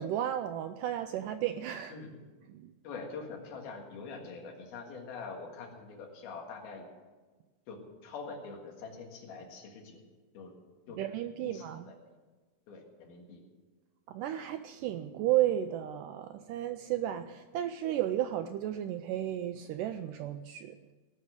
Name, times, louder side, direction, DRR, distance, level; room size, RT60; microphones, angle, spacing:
voice 1, 0.0-1.9 2.5-2.7 11.0-11.9 14.1-20.8, right 12 dB, 85° right, 9 dB, 1.9 m, -33 dB
voice 2, 2.8-6.9 7.7-10.0 10.3-10.5 10.9-11.0 11.4-12.0 12.7-13.4, left 4 dB, 85° left, 1 dB, 3.8 m, -44 dB
18.5 x 6.4 x 8.1 m, 1.3 s
omnidirectional pair, 4.2 m